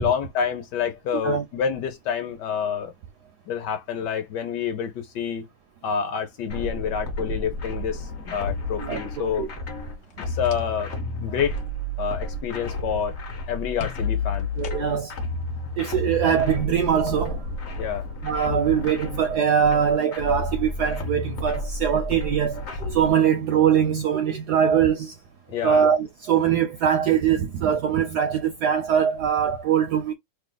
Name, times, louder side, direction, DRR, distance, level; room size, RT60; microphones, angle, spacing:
voice 1, 0.0-2.9 3.5-5.4 5.8-9.4 10.3-10.9 11.2-11.5 12.0-13.2 13.5-14.5 17.8-18.1 25.5-25.9, left 7 dB, 70° left, 1.2 m, -28 dB
sound 1, 6.5-23.1, left 2 dB, 45° left, 1.0 m, -31 dB
voice 2, 8.8-9.5 14.6-15.1 15.8-17.5 18.2-25.1 25.6-30.1, right 8 dB, 75° right, 0.9 m, -22 dB
sound 2, 10.0-11.0 11.3-11.7 13.8-15.2, left 3 dB, 90° left, 0.6 m, -40 dB
3.2 x 2.4 x 3.8 m
omnidirectional pair, 2.2 m